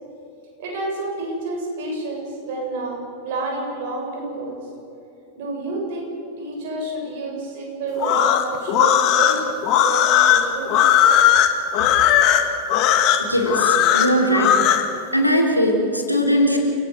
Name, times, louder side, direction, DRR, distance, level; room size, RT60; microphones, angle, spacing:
voice 1, 0.6-4.6 5.3-6.1 6.4-10.8 11.8-11.9, right 2 dB, 50° right, -1 dB, 7.4 m, -29 dB
sound 1, 8.0-14.9, left 10 dB, 40° left, 1.9 m, -17 dB
voice 2, 13.2-14.5 15.1-16.6, equal, 90° left, 1 dB, 3.5 m, -19 dB
29.0 x 18.0 x 6.4 m, 2.9 s
figure-of-eight pair, 90°, 0 cm